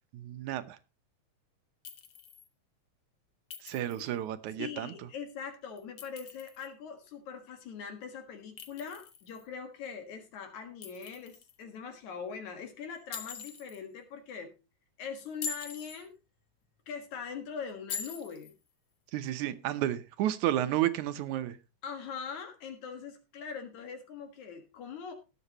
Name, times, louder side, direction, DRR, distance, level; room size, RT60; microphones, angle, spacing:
voice 1, 0.1-0.8 3.6-4.9 19.1-21.6, right 12 dB, 85° right, 2.3 m, -31 dB
Chink clink, 1.8-2.5 3.5-4.1 5.8-6.7 8.6-9.4 10.8-11.6 13.1-13.8 15.3-16.0 17.9-18.5, left 6 dB, 55° left, 1.8 m, -43 dB
voice 2, 4.6-14.5 15.0-16.1 16.9-18.5 21.8-25.1, left 6 dB, 80° left, 3.1 m, -42 dB
19.0 x 7.8 x 3.0 m
omnidirectional pair, 3.3 m